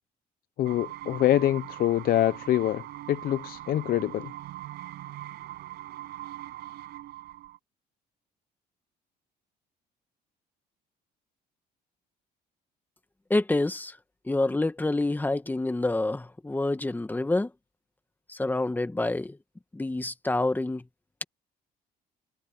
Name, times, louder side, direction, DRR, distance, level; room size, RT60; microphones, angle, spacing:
voice 1, 0.6-4.3, left 13 dB, 60° left, 0.7 m, -25 dB
sound 1, 0.6-7.6, right 15 dB, 75° right, 6.9 m, -41 dB
voice 2, 13.3-14.0 14.2-17.5 18.3-19.4 19.7-20.8, left 2 dB, 10° left, 1.7 m, -27 dB
cardioid pair, 110°, 17 cm